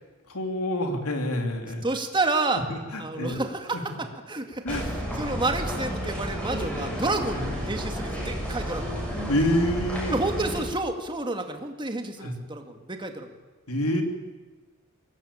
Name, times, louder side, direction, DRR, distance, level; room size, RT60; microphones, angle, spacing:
voice 1, 0.3-1.8 2.7-3.4 3.7-4.0 4.6-4.8 6.0-6.1 7.3-7.5 9.3-10.2 12.2-12.4 13.7-14.0, left 1 dB, 75° left, 4 dB, 3.6 m, -27 dB
voice 2, 1.6-2.7 3.0-4.9 5.2-9.0 10.1-13.3, right 2 dB, 20° right, 5 dB, 2.1 m, -30 dB
sound 1, 4.7-10.6, equal, 5° left, 7.1 m, -31 dB
23.5 x 18.5 x 8.8 m, 1.3 s
head